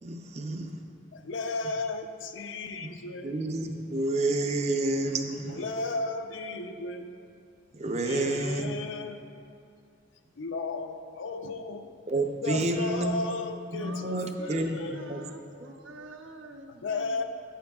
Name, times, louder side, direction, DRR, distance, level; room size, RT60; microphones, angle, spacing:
voice 1, 0.0-0.8 2.8-2.9 3.2-5.6 7.7-8.7 12.1-13.2 13.7-15.2 15.5-15.6, right 2 dB, 35° right, 5 dB, 0.5 m, -29 dB
voice 2, 1.1-3.3 5.5-7.2 8.0-9.2 10.4-12.0 12.4-15.1 16.7-17.2, left 3 dB, 75° left, 6 dB, 0.5 m, -34 dB
voice 3, 13.8-17.2, right 2 dB, 80° right, 4 dB, 0.7 m, -46 dB
10.0 x 9.1 x 2.4 m, 2.5 s
head